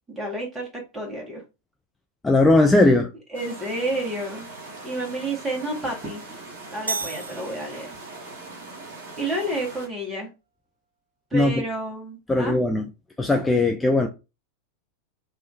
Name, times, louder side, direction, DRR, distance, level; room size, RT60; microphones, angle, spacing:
voice 1, 0.1-0.7 0.9-1.4 3.3-4.5 4.8-6.2 6.7-8.0 9.2-10.3 11.3-12.6, right 1 dB, 10° right, 1.8 m, -30 dB
voice 2, 2.2-3.1 11.3-11.6 12.3-12.8 13.2-14.1, left 2 dB, 10° left, 0.4 m, -18 dB
sound 1, 3.3-9.9, right 3 dB, 50° right, 1.5 m, -41 dB
sound 2, 6.9-8.3, right 3 dB, 80° right, 0.3 m, -33 dB
3.6 x 3.1 x 2.7 m
figure-of-eight pair, 90°, 0 cm